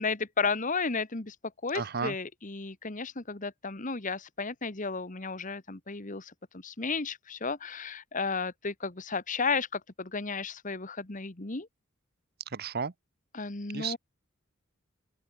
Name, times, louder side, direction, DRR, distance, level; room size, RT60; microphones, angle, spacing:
voice 1, 0.0-1.3 1.6-11.7 13.3-14.0, left 4 dB, 40° left, 1.5 m, -33 dB
voice 2, 1.7-2.1 12.5-12.9 13.7-14.0, right 5 dB, 50° right, 0.8 m, -33 dB
open air
head